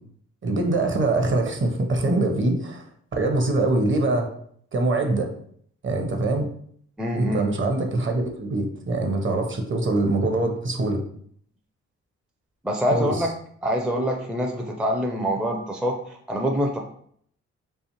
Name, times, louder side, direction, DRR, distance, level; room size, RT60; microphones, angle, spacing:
voice 1, 0.4-2.8 3.1-4.3 4.7-5.3 5.8-6.5 7.2-11.0 12.9-13.3, right 2 dB, 35° right, 4 dB, 0.7 m, -23 dB
voice 2, 7.0-7.4 12.6-13.3 13.6-16.8, equal, 5° right, 2 dB, 0.4 m, -25 dB
2.4 x 2.4 x 2.9 m, 0.63 s
hypercardioid pair, 40°, 34 cm